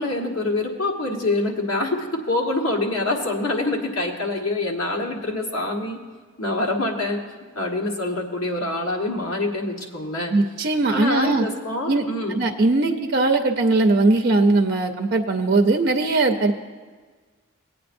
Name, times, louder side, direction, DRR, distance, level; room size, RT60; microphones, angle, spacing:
voice 1, 0.0-6.0 6.4-7.2 7.5-10.3 10.9-12.5, left 2 dB, 85° left, -1 dB, 1.4 m, -25 dB
voice 2, 10.3-11.4 11.9-12.0 12.3-16.5, right 2 dB, 50° right, 4 dB, 0.5 m, -20 dB
18.5 x 8.8 x 2.6 m, 1.5 s
head